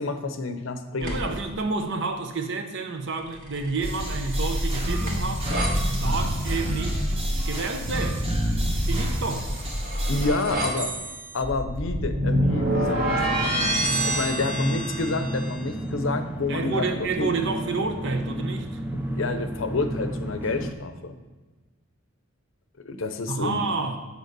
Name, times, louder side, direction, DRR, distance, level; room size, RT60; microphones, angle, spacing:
voice 1, 0.0-1.4 10.1-10.9 11.3-13.8 14.0-17.3 18.9-21.1 22.8-23.6, left 3 dB, 65° left, 8 dB, 0.7 m, -29 dB
sound 1, 1.0-1.4 3.3-5.7 9.2-15.6, right 1 dB, 45° right, 1.5 m, -28 dB
voice 2, 1.0-5.5 6.0-7.0 7.5-8.4 8.8-9.5 16.5-18.7 23.3-24.0, right 4 dB, 60° right, 6 dB, 0.9 m, -29 dB
sound 2, 3.8-10.3, equal, 30° right, 1.5 m, -27 dB
sound 3, 12.5-20.7, right 1 dB, 10° right, 0.5 m, -32 dB
6.5 x 4.7 x 6.7 m, 1.3 s
head